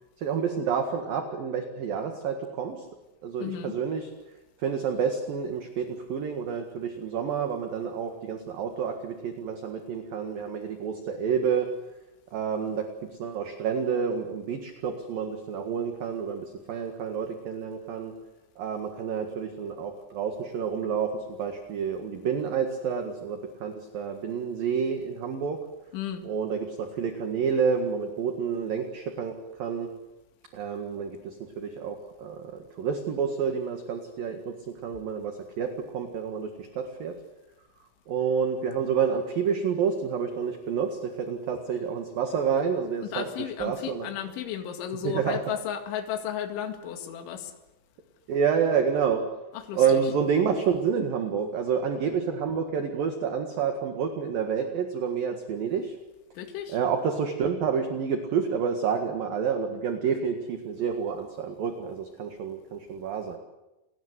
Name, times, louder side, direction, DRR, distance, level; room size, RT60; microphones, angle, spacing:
voice 1, 0.2-2.9 3.2-4.1 4.6-11.7 12.3-12.9 13.2-18.1 18.6-25.6 26.2-29.3 29.6-29.9 30.5-34.5 34.8-37.2 38.1-44.1 45.0-45.4 48.3-49.2 49.7-55.9 56.7-63.4, right 6 dB, 55° right, 5 dB, 3.0 m, -29 dB
voice 2, 3.4-3.7 25.9-26.3 43.0-47.5 49.5-50.0 56.3-56.8, left 9 dB, 70° left, 5 dB, 4.3 m, -34 dB
29.5 x 19.0 x 8.2 m, 1.0 s
omnidirectional pair, 5.7 m